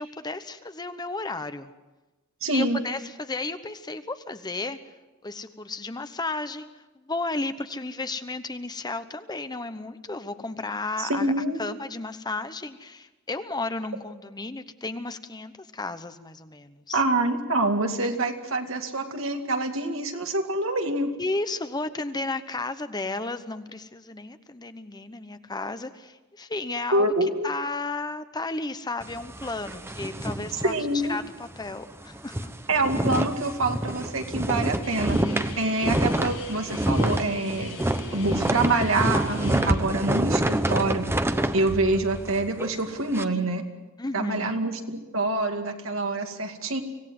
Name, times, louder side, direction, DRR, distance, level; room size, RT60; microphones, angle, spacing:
voice 1, 0.0-1.7 2.5-4.8 5.2-6.7 6.9-11.3 11.6-17.0 21.2-27.1 27.4-30.7 31.1-32.5 44.0-44.6, left 3 dB, 20° left, 10 dB, 0.9 m, -33 dB
voice 2, 2.4-2.8 11.0-11.6 16.9-21.1 26.9-27.5 30.6-31.2 32.7-35.2 35.6-37.7 38.1-41.1 41.5-43.6 44.1-46.8, right 2 dB, 70° right, 4 dB, 2.4 m, -26 dB
sound 1, 29.0-31.3 31.6-31.7 32.1-43.2, right 1 dB, 10° right, 0.9 m, -27 dB
Guitar, 34.8-39.7, left 5 dB, 80° left, 7.0 m, -42 dB
25.5 x 17.5 x 7.8 m, 1.1 s
head